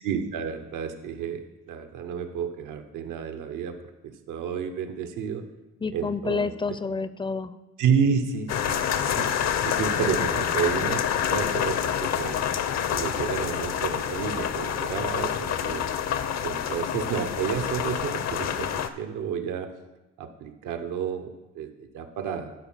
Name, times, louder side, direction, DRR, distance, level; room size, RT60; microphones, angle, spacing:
voice 1, 0.0-3.8 4.0-5.4 5.9-6.5 7.8-9.3 9.6-12.5 12.9-15.8 16.4-19.7 20.2-22.5, right 7 dB, 85° right, 7 dB, 0.9 m, -30 dB
voice 2, 5.8-7.6 9.1-9.4 10.0-10.3 10.7-10.9, left 4 dB, 15° left, 14 dB, 0.4 m, -30 dB
sound 1, 8.5-18.9, left 9 dB, 60° left, 0.7 m, -27 dB
12.0 x 4.5 x 5.6 m, 1.1 s
cardioid pair, 90°, 30 cm